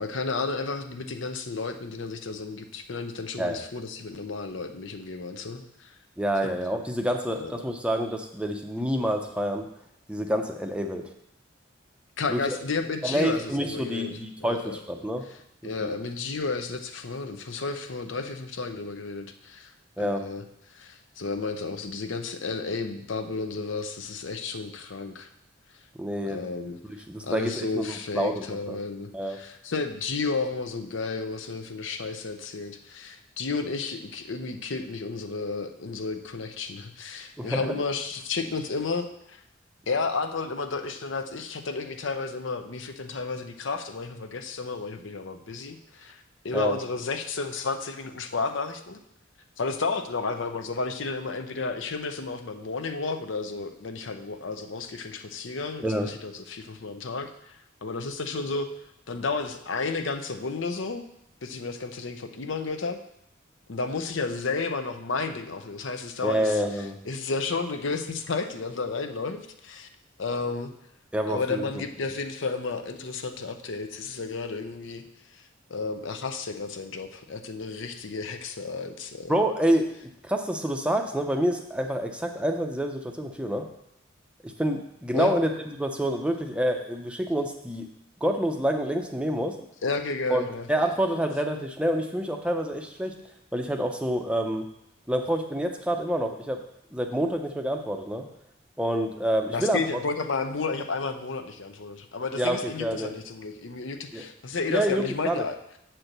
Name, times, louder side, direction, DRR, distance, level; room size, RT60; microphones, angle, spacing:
voice 1, 0.0-5.9 6.4-6.5 7.4-7.5 12.2-14.8 15.6-19.7 20.0-20.4 20.7-25.3 26.2-26.8 27.2-39.4 39.9-49.0 49.6-58.7 59.1-61.0 61.4-63.0 63.7-66.6 67.0-69.9 70.2-70.7 71.3-75.0 75.3-75.4 75.7-79.4 85.1-85.3 89.8-90.7 99.5-105.6, left 4 dB, 70° left, 7 dB, 0.7 m, -32 dB
voice 2, 6.2-9.7 10.1-11.0 12.3-12.6 13.0-15.2 15.8-15.9 20.0-20.2 25.9-26.4 27.1-28.8 29.1-29.4 37.4-37.8 46.5-46.7 55.8-56.1 66.2-67.0 71.1-71.6 79.3-83.7 84.4-85.5 85.8-87.9 88.2-89.6 90.3-93.1 93.5-94.7 95.1-96.6 96.9-98.2 98.8-99.8 102.4-103.1 104.1-104.2 104.7-105.4, equal, 5° right, 4 dB, 0.5 m, -27 dB
7.6 x 4.5 x 6.6 m, 0.77 s
head